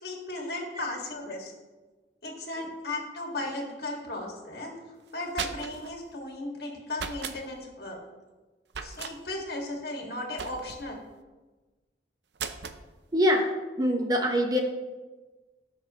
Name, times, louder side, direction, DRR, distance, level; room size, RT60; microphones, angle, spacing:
voice 1, 0.0-1.5 2.2-4.7 5.1-8.0 8.8-11.0, left 2 dB, 60° left, 0 dB, 2.0 m, -36 dB
sound 1, 5.1-5.9 6.9-7.4 8.7-9.2 10.4-10.9 12.4-12.8, right 6 dB, 75° right, 0.7 m, -36 dB
voice 2, 13.1-13.4 13.8-14.6, equal, 20° right, 2 dB, 1.0 m, -23 dB
17.5 x 6.3 x 3.1 m, 1.2 s
head